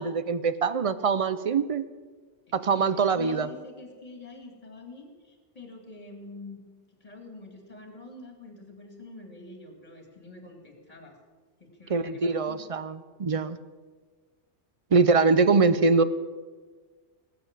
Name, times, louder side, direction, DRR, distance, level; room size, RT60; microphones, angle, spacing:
voice 1, 0.0-1.9 2.5-3.5 11.9-13.6 14.9-16.0, right 4 dB, 40° right, 14 dB, 0.5 m, -23 dB
voice 2, 2.5-6.6 7.0-11.2 11.6-12.6, left 3 dB, 30° left, 4 dB, 2.5 m, -46 dB
18.5 x 8.6 x 7.4 m, 1.4 s
omnidirectional pair, 1.2 m